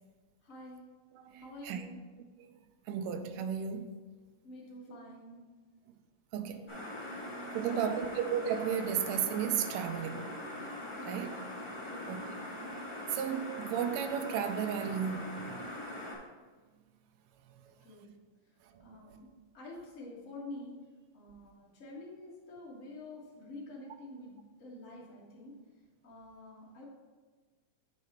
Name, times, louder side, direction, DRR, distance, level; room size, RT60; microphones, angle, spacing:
voice 1, 0.4-0.8 1.4-2.0 4.4-5.4 6.5-6.7 7.3-8.1 10.9-11.3 11.8-12.1 17.8-18.1 18.8-20.8 21.1-25.6 26.0-26.8, left 2 dB, 35° left, 1.4 m, -48 dB
voice 2, 1.1-1.9 2.9-3.9 4.9-5.0 6.3-6.7 7.5-10.3 11.1-11.4 12.1-12.2 13.1-15.6 18.8-19.2, right 8 dB, 80° right, 2.1 m, -34 dB
sound 1, 6.7-16.1, left 1 dB, 10° left, 1.4 m, -42 dB
8.4 x 4.9 x 4.3 m
omnidirectional pair, 3.9 m